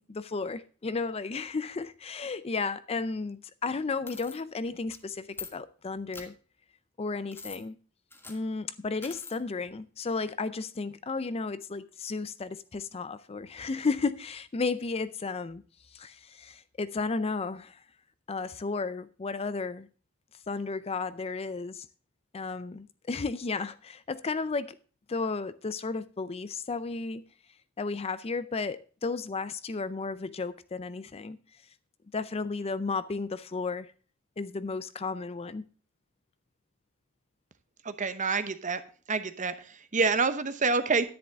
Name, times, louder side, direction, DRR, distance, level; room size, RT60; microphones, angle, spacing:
voice 1, 0.0-6.3 7.0-7.8 8.3-15.6 15.9-17.8 18.3-19.9 20.5-21.9 22.3-24.7 25.1-27.2 27.8-31.4 32.1-33.9 34.4-35.7, left 4 dB, 30° left, 0.4 m, -33 dB
sound 1, 4.1-4.4 4.9-5.0 5.3-5.5 6.1-6.3 7.3-7.6 8.1-8.4 9.0-9.4, left 4 dB, 10° left, 1.4 m, -43 dB
voice 2, 37.8-38.8 39.1-41.1, right 4 dB, 35° right, 0.9 m, -27 dB
10.5 x 10.0 x 3.5 m
head